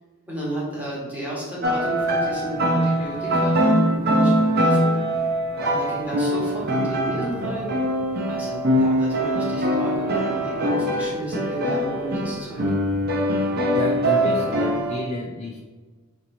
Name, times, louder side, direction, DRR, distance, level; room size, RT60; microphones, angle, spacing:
voice 1, 0.3-4.9 5.6-7.7 8.3-12.6, right 1 dB, 5° right, -8 dB, 1.5 m, -32 dB
sound 1, 1.6-15.0, equal, 45° right, 0.7 m, -22 dB
voice 2, 13.4-15.6, left 1 dB, 30° left, 0 dB, 0.3 m, -30 dB
4.2 x 3.2 x 3.9 m, 1.3 s
head